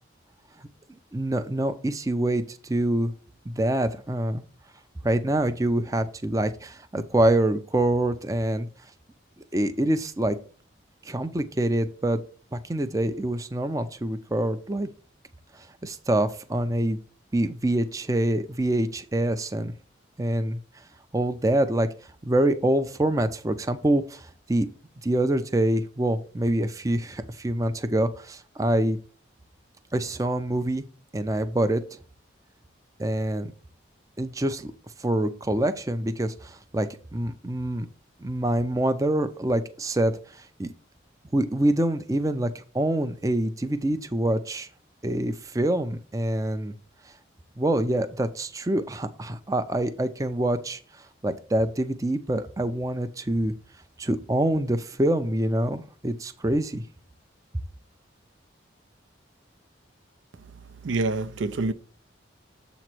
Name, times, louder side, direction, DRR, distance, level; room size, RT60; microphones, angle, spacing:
voice 1, 1.1-3.1 3.5-4.4 5.0-8.7 9.5-10.4 11.0-12.2 12.5-14.9 15.8-17.0 17.3-19.7 20.2-20.6 21.1-21.9 22.2-24.7 25.0-29.0 29.9-30.8 31.1-31.8 33.0-33.5 34.2-34.7 35.0-37.9 38.2-40.7 41.3-44.7 45.0-46.7 47.6-50.8 51.2-53.5 54.0-56.8, right 1 dB, 15° right, 0.4 m, -25 dB
voice 2, 60.3-61.7, right 3 dB, 75° right, 0.5 m, -28 dB
7.5 x 3.0 x 6.0 m
head